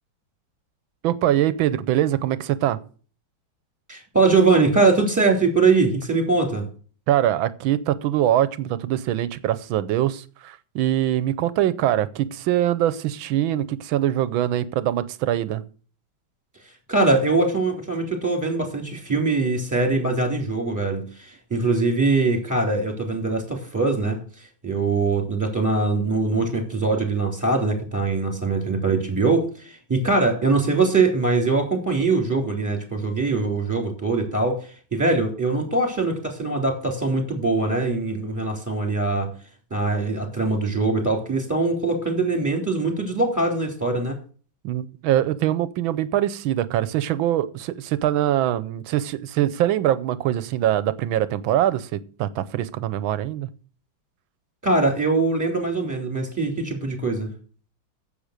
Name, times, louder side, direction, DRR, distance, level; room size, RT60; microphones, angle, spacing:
voice 1, 1.0-2.8 7.1-15.6 44.6-53.5, right 12 dB, 90° right, 16 dB, 1.5 m, -23 dB
voice 2, 3.9-6.7 16.9-39.3 39.7-44.2 54.6-57.3, right 3 dB, 10° right, 3 dB, 3.5 m, -22 dB
10.0 x 7.8 x 6.6 m, 0.41 s
omnidirectional pair, 2.1 m